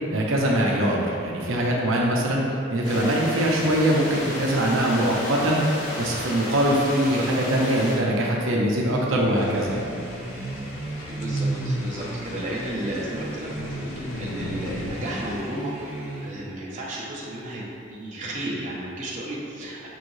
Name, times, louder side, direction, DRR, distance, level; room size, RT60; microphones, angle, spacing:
voice 1, 0.1-2.4 2.7-5.6 6.0-9.8, right 1 dB, 80° right, -2 dB, 0.6 m, -22 dB
sound 1, 2.8-7.9, equal, 70° left, 1.5 m, -33 dB
sound 2, 8.7-16.6, right 1 dB, 10° right, 0.8 m, -33 dB
sound 3, 9.3-15.4, left 2 dB, 85° left, 0.4 m, -39 dB
voice 2, 11.1-15.9 16.2-19.9, right 1 dB, 35° right, -5 dB, 0.6 m, -33 dB
5.5 x 3.1 x 2.6 m, 2.4 s
head